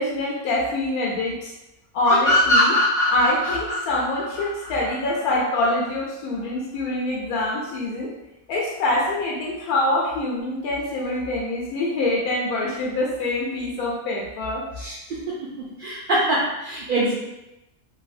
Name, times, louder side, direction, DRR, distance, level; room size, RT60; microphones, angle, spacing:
voice 1, 0.0-1.5 1.9-2.8 3.1-8.1 8.5-14.6, left 1 dB, 85° left, -3 dB, 1.1 m, -25 dB
sound 1, 2.0-5.4, left 1 dB, ahead, 1.3 m, -21 dB
voice 2, 15.6-17.1, right 1 dB, 70° right, -6 dB, 0.5 m, -24 dB
3.2 x 2.6 x 2.4 m, 0.94 s
omnidirectional pair, 1.5 m